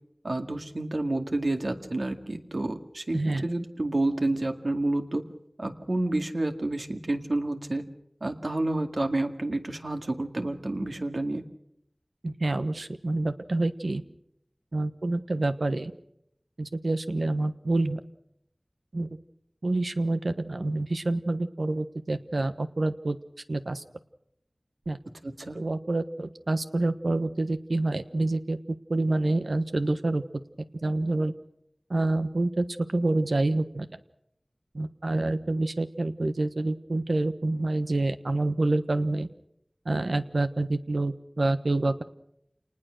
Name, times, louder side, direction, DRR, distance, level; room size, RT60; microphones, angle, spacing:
voice 1, 0.2-5.2 5.6-7.8 8.2-11.4 25.2-25.6, right 2 dB, 70° right, 6 dB, 2.1 m, -29 dB
voice 2, 3.1-3.5 12.2-14.0 14.7-15.9 16.6-18.0 18.9-19.1 19.6-23.2 23.5-23.8 24.9-25.0 25.5-28.6 28.9-30.2 30.8-31.3 31.9-32.6 32.9-33.9 34.7-39.3 39.8-42.0, right 2 dB, 85° right, 10 dB, 1.2 m, -27 dB
28.0 x 19.5 x 6.5 m, 0.76 s
wide cardioid pair, 45°, 0 cm